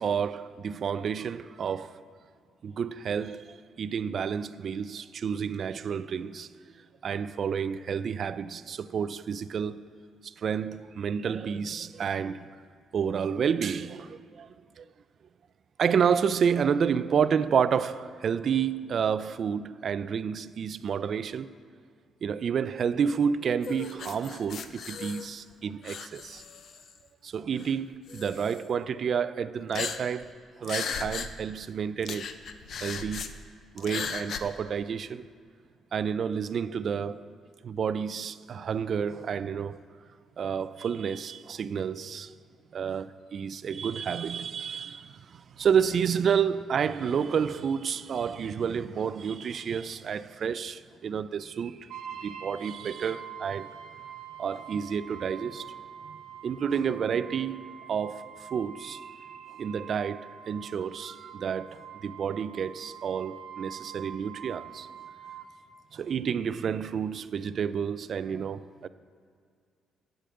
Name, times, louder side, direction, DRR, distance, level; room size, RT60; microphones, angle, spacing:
voice 1, 0.0-2.0 2.6-6.5 7.0-9.8 10.2-12.5 12.9-14.9 15.8-21.5 22.2-26.4 27.2-30.3 30.6-32.3 32.8-33.3 33.7-35.3 35.9-37.3 37.6-39.8 40.4-42.3 42.7-53.7 54.4-55.7 56.0-56.2 56.4-59.3 59.5-64.9 65.9-68.9, right 7 dB, 55° right, 0.3 m, -30 dB
sound 1, 23.6-25.5 25.8-27.0 27.6-27.7 28.1-28.6 29.7-30.3 30.6-31.3 31.6-31.7 32.0-33.3 33.8-34.4, left 6 dB, 60° left, 0.5 m, -36 dB
Brass instrument, 51.9-65.5, right 9 dB, 85° right, 1.1 m, -45 dB
9.0 x 5.0 x 7.6 m
cardioid pair, 90°, 0 cm